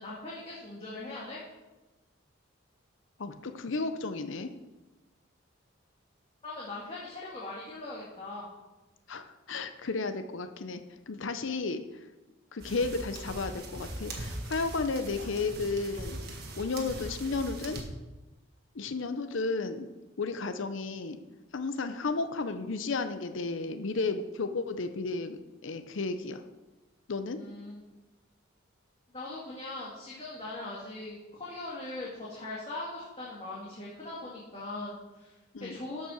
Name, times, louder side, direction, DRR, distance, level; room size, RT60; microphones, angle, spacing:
voice 1, 0.0-1.4 6.4-8.5 27.3-27.8 29.1-36.1, left 2 dB, 25° left, -6 dB, 1.9 m, -40 dB
voice 2, 3.2-4.5 9.1-12.0 12.5-16.2 16.6-17.8 18.7-19.9 20.2-21.2 21.5-26.4 27.1-27.4 35.5-35.8, left 3 dB, 65° left, 9 dB, 0.6 m, -33 dB
sound 1, 12.6-17.8, right 1 dB, 45° right, 1.7 m, -40 dB
12.5 x 5.6 x 6.2 m, 1.1 s
head